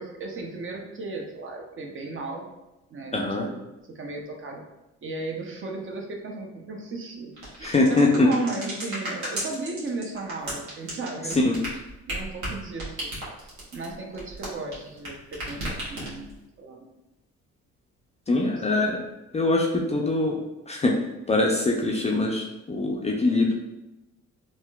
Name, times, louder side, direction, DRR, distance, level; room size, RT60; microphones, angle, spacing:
voice 1, 0.0-2.5 2.9-3.6 3.9-4.6 5.0-7.3 7.6-11.5 12.1-13.2 13.4-16.3 16.6-16.9 18.5-19.0, right 3 dB, 45° right, 1 dB, 0.6 m, -35 dB
voice 2, 3.1-3.5 7.6-8.3 11.4-11.6 18.3-19.0 19.3-20.4 20.7-21.0 21.3-23.5, left 2 dB, 20° left, 0 dB, 0.3 m, -23 dB
sound 1, 7.4-15.1 15.3-16.4, right 1 dB, 70° right, 1.3 m, -34 dB
3.5 x 2.6 x 2.3 m, 0.98 s
cardioid pair, 90°, 30 cm